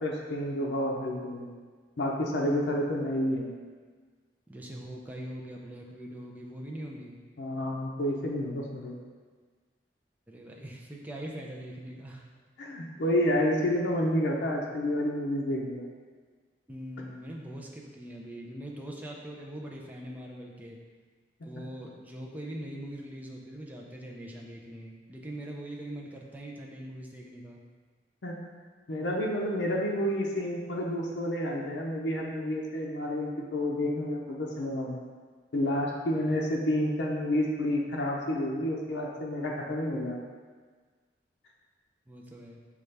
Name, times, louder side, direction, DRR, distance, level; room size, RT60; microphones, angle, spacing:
voice 1, 0.0-1.5 2.0-3.5 7.4-9.0 12.6-15.8 28.2-28.4 28.9-35.0 35.5-40.2, left 1 dB, 85° left, -2 dB, 0.5 m, -29 dB
voice 2, 4.5-7.2 10.3-12.2 16.7-20.8 21.4-27.6 42.1-42.6, right 1 dB, 10° right, -2 dB, 0.4 m, -42 dB
5.4 x 2.4 x 3.2 m, 1.5 s
head